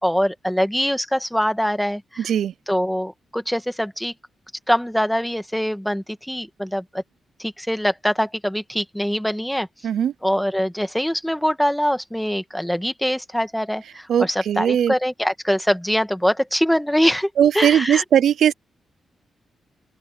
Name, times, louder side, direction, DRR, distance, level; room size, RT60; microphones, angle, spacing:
voice 1, 0.0-2.3 2.7-4.1 4.7-7.0 7.4-9.7 10.2-17.3 17.5-18.0, equal, ahead, 1.6 m, -23 dB
voice 2, 2.2-2.5 9.8-10.1 14.1-14.9 17.4-18.5, right 9 dB, 70° right, 0.3 m, -19 dB
open air
wide cardioid pair, 150°, 0 cm